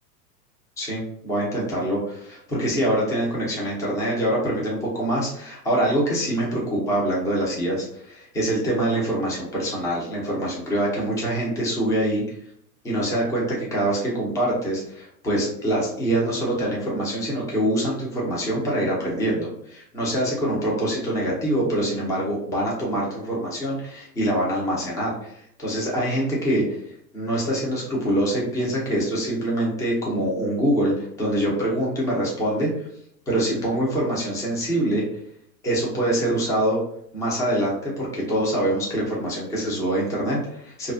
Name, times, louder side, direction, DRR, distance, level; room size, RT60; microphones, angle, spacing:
voice 1, 0.8-12.2 12.8-26.8 27.1-32.9 33.3-35.0 35.6-36.8 37.1-40.9, right 1 dB, 5° left, -4 dB, 0.5 m, -24 dB
2.4 x 2.3 x 2.4 m, 0.70 s
hypercardioid pair, 100°, 49 cm